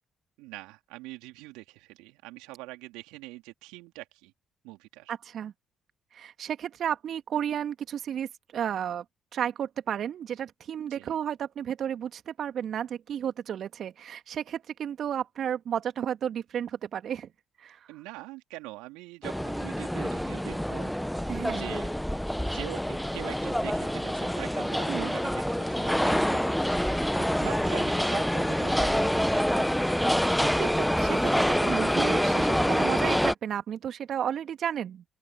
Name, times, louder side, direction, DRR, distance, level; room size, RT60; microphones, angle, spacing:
voice 1, 0.4-4.3 4.6-5.1 10.9-11.2 17.9-20.9 21.6-21.9 22.4-27.0 27.4-29.9, right 21 dB, 75° right, 3.2 m, -43 dB
voice 2, 5.1-5.5 6.1-9.0 9.3-17.3 17.6-17.8 21.3-21.7 24.9-25.1 27.4-27.5 30.4-35.0, right 9 dB, 60° right, 2.6 m, -32 dB
sound 1, 19.2-33.3, equal, 5° left, 0.9 m, -26 dB
open air
hypercardioid pair, 45°, 0 cm